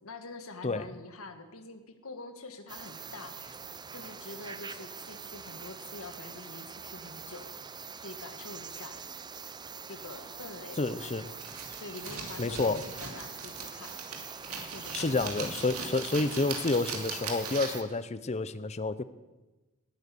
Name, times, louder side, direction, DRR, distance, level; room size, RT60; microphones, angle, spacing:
voice 1, 0.0-3.6 3.9-7.6 8.0-9.0 9.9-11.5 11.8-14.0 14.7-15.3, left 2 dB, 65° left, 8 dB, 1.6 m, -46 dB
sound 1, 2.7-17.8, right 6 dB, 20° right, 0.5 m, -44 dB
voice 2, 10.8-11.3 12.4-12.8 14.9-19.0, left 3 dB, 30° left, 15 dB, 0.6 m, -29 dB
sound 2, 11.4-17.9, right 5 dB, 75° right, 2.8 m, -40 dB
19.5 x 9.2 x 6.9 m, 1.1 s
head